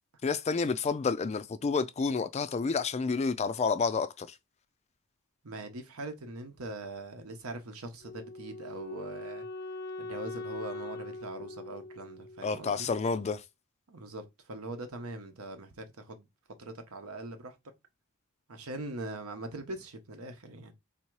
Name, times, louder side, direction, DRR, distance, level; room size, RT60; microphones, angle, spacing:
voice 1, 0.2-4.4 12.4-13.4, left 4 dB, 30° left, 0.3 m, -29 dB
voice 2, 5.4-9.5 10.0-12.9 13.9-16.3 16.6-17.5 18.5-20.7, right 2 dB, 80° right, 0.9 m, -42 dB
Wind instrument woodwind instrument, 8.0-13.1, left 2 dB, 85° left, 0.6 m, -42 dB
3.6 x 2.8 x 4.6 m
head